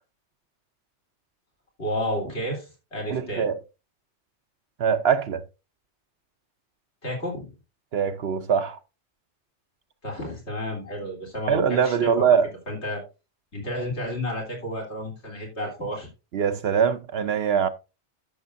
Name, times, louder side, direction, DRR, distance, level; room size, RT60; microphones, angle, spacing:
voice 1, 1.8-3.5 7.0-7.5 10.0-12.4 12.7-13.0 13.5-16.1, equal, 75° left, 3.6 m, -31 dB
voice 2, 3.1-3.5 4.8-5.4 7.9-8.8 11.5-12.5 16.3-17.7, right 7 dB, 65° right, 0.9 m, -22 dB
12.5 x 6.6 x 2.6 m
omnidirectional pair, 1.2 m